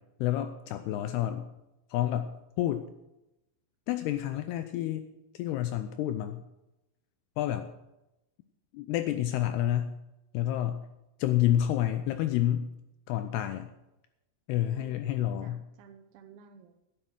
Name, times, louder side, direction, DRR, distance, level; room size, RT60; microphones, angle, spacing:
voice 1, 0.2-1.4 1.9-2.3 2.6-2.9 3.9-5.1 5.3-6.4 7.4-7.7 8.7-9.9 10.3-10.8 11.2-12.7 13.1-13.7 14.5-15.6, left 12 dB, 85° left, 9 dB, 2.4 m, -29 dB
voice 2, 1.1-1.4 14.7-15.1 15.4-16.9, right 7 dB, 85° right, 6 dB, 3.2 m, -54 dB
11.0 x 10.0 x 6.2 m, 0.93 s
omnidirectional pair, 5.2 m